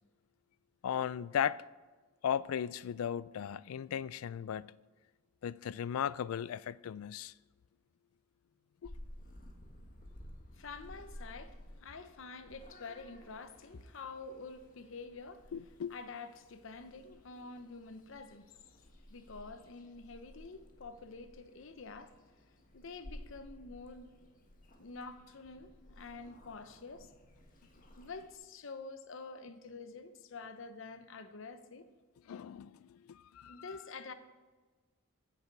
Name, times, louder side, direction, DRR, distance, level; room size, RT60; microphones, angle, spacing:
voice 1, 0.8-1.6 2.2-4.7 5.4-7.3 8.8-8.9 15.5-15.9 32.3-33.8, left 8 dB, 85° left, 0.3 m, -36 dB
Purr / Meow, 8.8-28.3, equal, 40° left, 1.5 m, -55 dB
voice 2, 10.6-15.5 15.9-18.8 19.1-22.2 22.7-24.1 24.8-27.1 27.9-31.8 33.5-34.1, left 4 dB, 65° left, 0.7 m, -48 dB
15.5 x 6.7 x 4.6 m
head